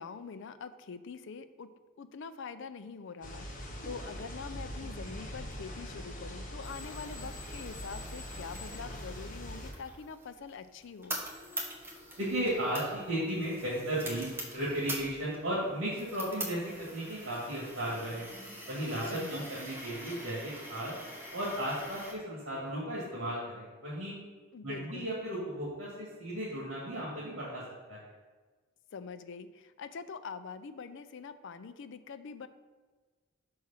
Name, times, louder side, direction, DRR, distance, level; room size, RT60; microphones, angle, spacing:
voice 1, 0.0-1.7 2.0-11.2 19.1-19.5 24.5-25.1 28.9-32.5, left 5 dB, 65° left, 11 dB, 0.5 m, -44 dB
sound 1, 3.2-9.7, equal, 40° left, 1.4 m, -42 dB
sound 2, 6.6-22.1, right 1 dB, 10° right, 1.3 m, -44 dB
voice 2, 12.2-18.3 18.7-20.9 21.3-24.2 24.6-27.6 27.9-28.0, right 1 dB, 75° right, -7 dB, 2.1 m, -35 dB
6.3 x 4.8 x 5.7 m, 1.4 s
head